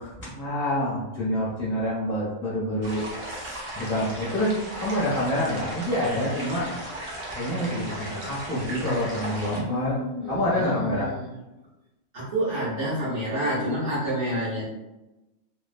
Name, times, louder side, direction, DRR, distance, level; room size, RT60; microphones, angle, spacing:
voice 1, 0.0-4.5 4.8-7.0 7.3-9.9 10.3-11.1, left 1 dB, 45° left, -8 dB, 0.8 m, -27 dB
sound 1, 2.8-9.6, right 1 dB, 50° right, 0.8 m, -36 dB
voice 2, 9.5-11.3 12.1-14.7, equal, 70° right, -10 dB, 1.3 m, -29 dB
3.0 x 2.1 x 2.4 m, 1.0 s
omnidirectional pair, 1.5 m